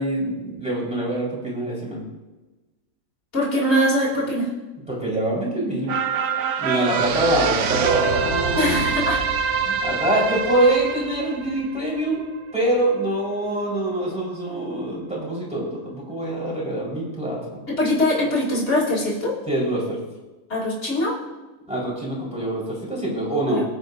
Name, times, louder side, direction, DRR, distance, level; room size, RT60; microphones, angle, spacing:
voice 1, 0.0-2.0 4.9-5.9 6.6-8.8 9.8-12.2 12.5-17.6 19.5-20.0 21.7-23.6, right 1 dB, 5° right, -6 dB, 4.5 m, -24 dB
voice 2, 3.3-4.5 8.6-9.2 17.8-19.3 20.5-21.1 23.5-23.6, left 1 dB, 45° left, -7 dB, 3.5 m, -22 dB
sound 1, 5.9-12.5 12.9-13.0, right 6 dB, 70° right, 1.3 m, -25 dB
22.0 x 8.3 x 2.7 m, 1.1 s
omnidirectional pair, 1.7 m